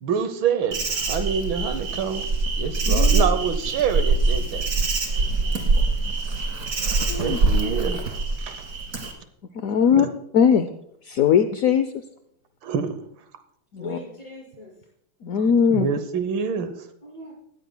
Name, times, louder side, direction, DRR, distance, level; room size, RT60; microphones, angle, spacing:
voice 1, 0.0-2.3 2.6-4.7 7.2-8.0 8.5-8.6 10.0-10.1 12.6-13.0 15.7-16.8, right 6 dB, 75° right, 10 dB, 1.6 m, -26 dB
Insect, 0.7-9.1, right 3 dB, 50° right, 2.3 m, -23 dB
voice 2, 2.8-3.3 7.1-7.4 9.5-10.1 10.3-10.7 11.0-11.9 13.7-14.0 15.2-15.9, left 7 dB, 70° left, 9 dB, 0.8 m, -20 dB
voice 3, 5.1-5.7 13.8-14.7 17.0-17.3, left 1 dB, 15° left, -4 dB, 5.8 m, -41 dB
19.0 x 14.0 x 2.2 m, 0.72 s
omnidirectional pair, 2.2 m